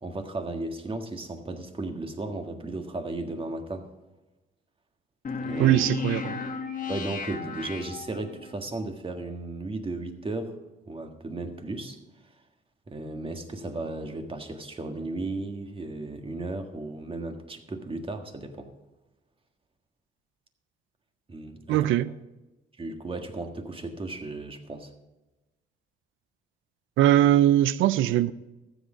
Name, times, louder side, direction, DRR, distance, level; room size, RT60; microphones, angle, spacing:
voice 1, 0.0-3.9 5.4-5.8 6.9-10.6 10.9-12.0 12.9-18.7 21.3-21.9 22.8-24.9, right 2 dB, 25° right, 1.6 m, -35 dB
sound 1, 5.2-8.5, left 5 dB, 40° left, 1.4 m, -34 dB
voice 2, 5.6-6.4 21.7-22.1 27.0-28.3, right 12 dB, 90° right, 0.5 m, -21 dB
14.0 x 7.9 x 5.1 m
cardioid pair, 90°, 20 cm